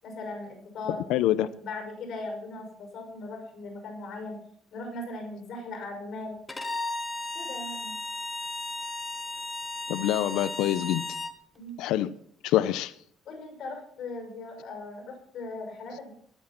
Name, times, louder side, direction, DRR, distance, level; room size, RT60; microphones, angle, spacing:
voice 1, 0.0-1.0 1.6-4.4 4.7-6.4 7.3-7.9 11.5-11.8 13.3-16.1, left 2 dB, 40° left, 3 dB, 6.1 m, -38 dB
voice 2, 1.1-1.5 9.9-11.0 11.8-12.1 12.4-12.9, left 13 dB, 85° left, 15 dB, 0.7 m, -25 dB
Bowed string instrument, 6.5-11.4, left 2 dB, 10° left, 1.0 m, -35 dB
20.0 x 8.3 x 5.9 m, 0.62 s
cardioid pair, 180°, 0 cm